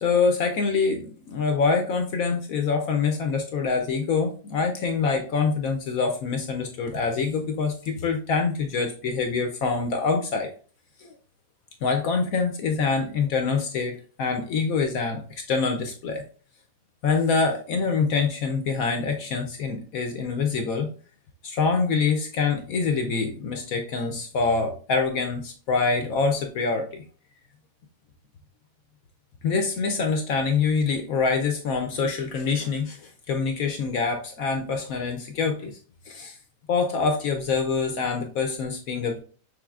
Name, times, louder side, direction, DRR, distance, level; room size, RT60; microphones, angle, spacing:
voice 1, 0.0-10.5 11.0-11.1 11.8-15.2 15.5-16.2 17.0-20.9 21.4-27.0 29.4-35.8 36.1-36.4 36.7-39.2, left 4 dB, 70° left, 4 dB, 0.9 m, -25 dB
6.2 x 3.5 x 2.3 m, 0.41 s
omnidirectional pair, 1.9 m